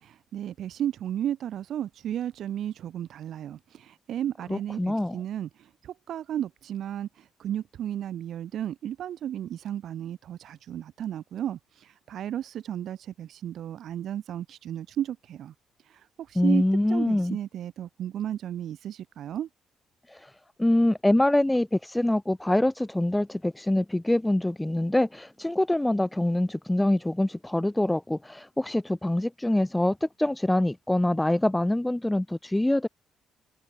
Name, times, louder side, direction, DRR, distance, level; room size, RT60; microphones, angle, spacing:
voice 1, 0.0-15.5 16.3-16.6 16.9-19.5, right 10 dB, 70° right, 2.5 m, -34 dB
voice 2, 4.5-5.1 16.4-17.4 20.1-20.3 20.6-32.9, left 1 dB, 10° left, 0.7 m, -25 dB
cardioid pair, 90°, 0 cm